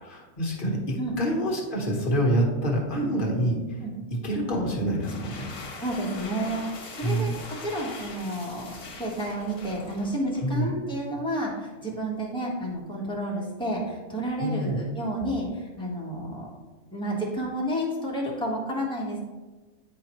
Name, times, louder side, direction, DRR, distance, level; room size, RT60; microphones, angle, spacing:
voice 1, 0.1-3.8 4.1-5.5 7.0-7.3 10.4-10.7 14.4-14.8, right 1 dB, 35° left, -1 dB, 1.2 m, -27 dB
sound 1, 4.8-10.6, left 3 dB, 65° left, 1.5 m, -42 dB
voice 2, 5.8-7.3 7.6-16.5 16.9-19.2, right 1 dB, 5° left, -6 dB, 1.3 m, -30 dB
9.2 x 4.4 x 3.0 m, 1.3 s
omnidirectional pair, 1.6 m